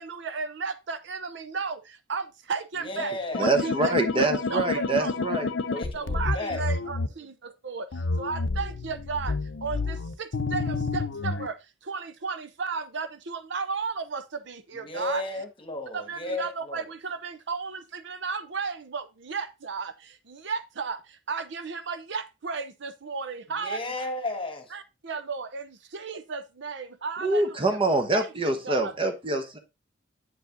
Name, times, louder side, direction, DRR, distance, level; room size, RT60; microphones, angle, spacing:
voice 1, 0.0-3.1 3.4-5.1 5.9-7.9 8.2-9.3 9.6-11.6 11.8-15.2 15.9-23.8 24.7-27.8 28.1-28.9, right 5 dB, 65° right, 0.7 m, -34 dB
voice 2, 2.8-3.6 5.7-6.7 14.8-16.8 23.5-24.7, left 2 dB, 30° left, 1.4 m, -34 dB
sound 1, 3.3-7.1 7.9-11.5, left 3 dB, 65° left, 0.6 m, -29 dB
voice 3, 3.4-5.5 27.2-29.6, right 2 dB, 30° right, 1.0 m, -25 dB
8.1 x 5.3 x 3.7 m
head